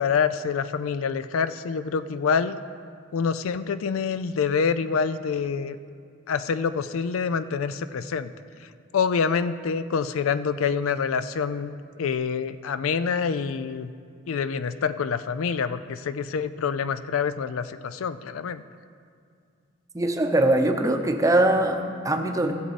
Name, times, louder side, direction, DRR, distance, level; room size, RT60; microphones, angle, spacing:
voice 1, 0.0-2.6 3.1-5.8 6.3-8.3 8.9-13.9 14.3-18.6, left 6 dB, 85° left, 13 dB, 0.4 m, -26 dB
voice 2, 19.9-22.5, right 1 dB, 15° right, 5 dB, 0.7 m, -22 dB
16.0 x 7.5 x 4.1 m, 2.3 s
head